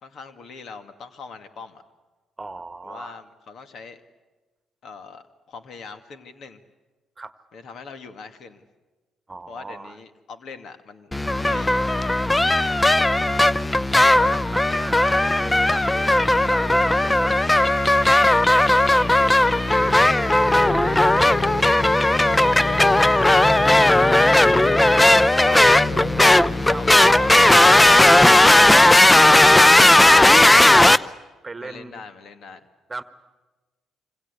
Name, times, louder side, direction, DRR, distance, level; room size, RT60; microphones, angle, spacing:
voice 1, 0.0-1.8 2.8-4.0 4.8-6.6 7.5-8.6 9.5-11.9 12.3-13.0 19.1-20.2 20.5-21.0 22.0-25.6 31.6-32.6, left 5 dB, 60° left, 9 dB, 2.2 m, -42 dB
voice 2, 2.4-3.2 7.2-7.3 9.3-10.0 14.1-17.6 20.8-21.5 25.1-25.2 25.5-25.9 26.7-27.6 28.7-30.7 31.4-32.0 32.9-33.0, right 3 dB, 25° right, 12 dB, 1.5 m, -36 dB
sound 1, 11.1-31.0, left 1 dB, 15° left, 0.8 m, -16 dB
sound 2, 15.7-28.3, left 2 dB, 40° left, 7.5 m, -35 dB
27.0 x 25.5 x 8.3 m, 1.2 s
hypercardioid pair, 50°, 0 cm